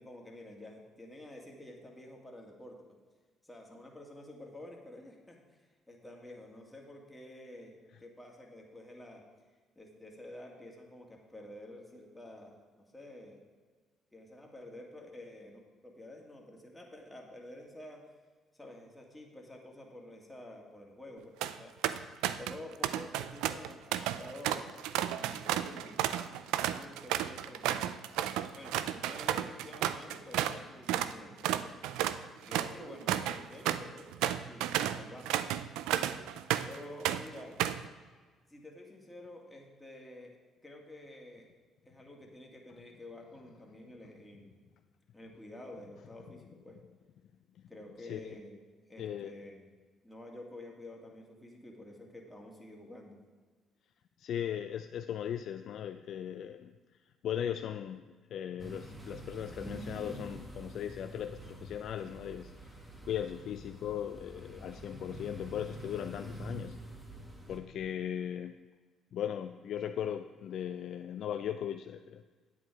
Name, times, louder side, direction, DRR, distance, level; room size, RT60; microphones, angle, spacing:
voice 1, 0.0-2.9 3.4-9.2 9.8-13.4 14.1-18.0 18.5-24.7 25.1-26.0 26.6-28.0 28.5-32.1 32.4-34.1 34.5-36.1 36.6-37.6 38.5-40.4 40.6-41.5 41.8-44.6 45.1-46.8 47.7-48.6 48.9-49.7 50.0-53.2, left 1 dB, 10° left, -1 dB, 2.4 m, -50 dB
sound 1, 21.2-21.5 21.8-22.6 22.8-30.6 30.9-31.1 31.4-36.8 37.0-37.9, right 12 dB, 80° right, 0.4 m, -32 dB
voice 2, 49.0-49.3 54.2-56.7 57.2-62.5 63.1-66.8 67.5-68.5 69.1-72.2, left 9 dB, 65° left, 8 dB, 0.4 m, -38 dB
sound 2, 58.6-67.6, right 1 dB, 15° right, 1.9 m, -46 dB
9.5 x 8.2 x 4.8 m, 1.4 s
supercardioid pair, 65°, 0 cm